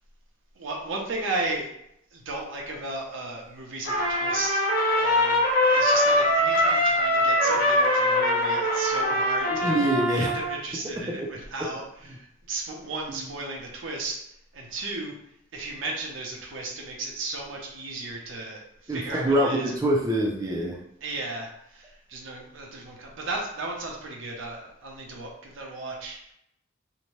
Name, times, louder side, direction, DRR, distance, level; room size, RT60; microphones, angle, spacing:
voice 1, 0.6-1.7 2.1-4.6 5.0-9.9 10.2-11.8 12.1-14.2 14.5-15.1 15.5-19.7 21.0-26.3, right 2 dB, 90° right, 0 dB, 0.7 m, -35 dB
Trumpet, 3.8-10.6, left 1 dB, 50° left, 0.7 m, -23 dB
voice 2, 9.5-10.3 13.1-13.2 18.9-20.8, right 1 dB, 20° right, -2 dB, 0.4 m, -25 dB
2.7 x 2.1 x 3.1 m, 0.76 s
head